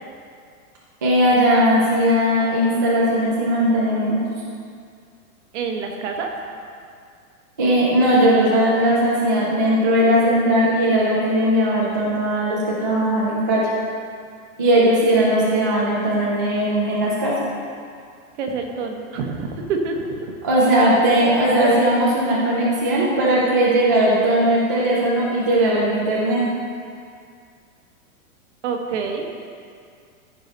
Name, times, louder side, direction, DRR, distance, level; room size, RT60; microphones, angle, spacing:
voice 1, 1.0-4.2 7.6-13.6 14.6-17.3 20.4-26.4, right 1 dB, 15° right, -6 dB, 0.3 m, -18 dB
voice 2, 5.5-6.3 18.4-20.3 28.6-29.2, right 4 dB, 55° right, 3 dB, 1.3 m, -27 dB
14.0 x 4.8 x 4.0 m, 2.3 s
supercardioid pair, 170°, 43 cm